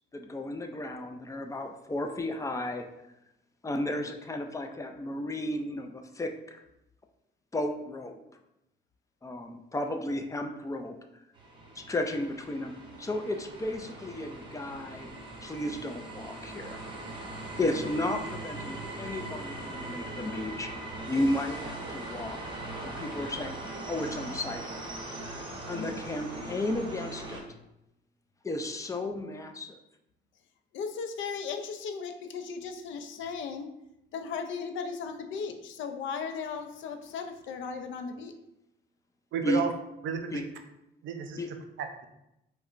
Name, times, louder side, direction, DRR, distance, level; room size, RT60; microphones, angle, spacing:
voice 1, 0.1-2.9 3.6-6.6 7.5-8.2 9.2-11.0 11.8-15.1 15.4-16.8 17.6-20.7 21.1-22.4 22.8-23.6 23.9-24.8 25.7-27.4 28.4-29.8 39.4-39.7 40.3-40.5 41.4-41.5, left 1 dB, 15° left, 5 dB, 0.4 m, -33 dB
sound 1, 11.3-27.4, right 2 dB, 25° right, 0.9 m, -40 dB
voice 2, 30.7-33.7 34.1-38.3, left 5 dB, 75° left, 7 dB, 0.4 m, -36 dB
voice 3, 39.3-39.7 40.0-40.5 41.0-42.0, right 7 dB, 75° right, 5 dB, 0.5 m, -33 dB
4.9 x 2.2 x 2.5 m, 0.87 s
cardioid pair, 90°, 20 cm